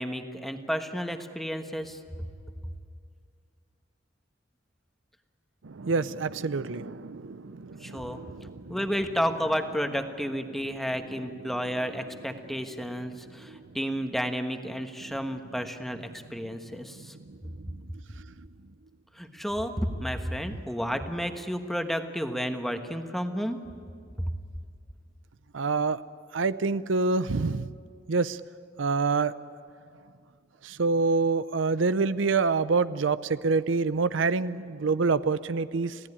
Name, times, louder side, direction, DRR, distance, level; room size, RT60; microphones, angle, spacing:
voice 1, 0.0-2.0 7.8-8.2 8.7-17.1 19.2-23.6 24.2-24.3, equal, ahead, 6 dB, 1.3 m, -31 dB
voice 2, 5.6-8.8 13.4-13.6 15.0-15.1 17.0-17.8 25.5-26.0 26.3-27.7 28.1-28.4 28.8-29.3 30.6-36.0, right 4 dB, 85° right, 15 dB, 0.6 m, -27 dB
27.0 x 16.5 x 9.9 m, 2.3 s
head